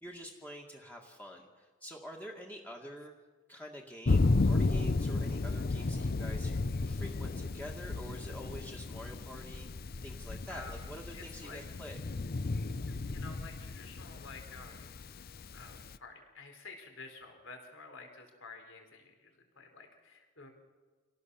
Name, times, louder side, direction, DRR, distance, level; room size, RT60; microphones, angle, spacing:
voice 1, 0.0-3.1 3.5-6.5 6.8-9.7 10.0-12.0, equal, 10° left, 0 dB, 2.1 m, -47 dB
Thunder, 4.1-16.0, left 3 dB, 45° left, 0.6 m, -33 dB
voice 2, 10.5-11.6 12.9-15.0 15.5-20.5, left 3 dB, 65° left, 4 dB, 4.5 m, -51 dB
26.5 x 18.0 x 7.1 m, 1.4 s
head